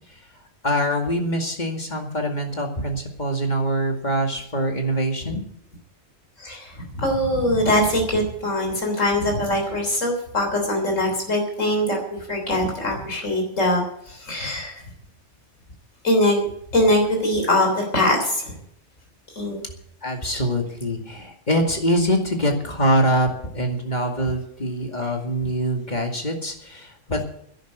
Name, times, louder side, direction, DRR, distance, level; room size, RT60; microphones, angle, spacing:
voice 1, 0.6-5.4 20.0-23.3 23.5-27.2, equal, 35° left, 2 dB, 2.4 m, -24 dB
voice 2, 6.4-14.8 16.0-16.5 16.7-18.6 19.4-19.6 20.3-20.4 25.0-25.1, left 1 dB, 85° left, 2 dB, 3.8 m, -22 dB
11.5 x 10.5 x 8.2 m, 0.69 s
omnidirectional pair, 1.3 m